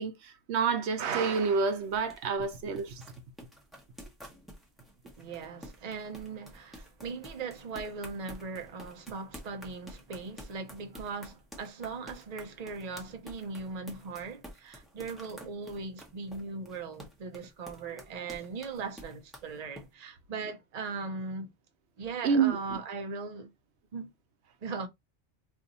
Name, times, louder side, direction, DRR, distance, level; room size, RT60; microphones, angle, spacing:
voice 1, 0.0-2.9 22.2-22.6, right 5 dB, 85° right, 0.9 m, -28 dB
sound 1, 0.8-19.9, equal, ahead, 0.7 m, -50 dB
voice 2, 5.2-21.5 22.0-23.5 23.9-24.1 24.6-24.9, right 4 dB, 45° right, 0.7 m, -39 dB
2.6 x 2.4 x 3.9 m
omnidirectional pair, 1.1 m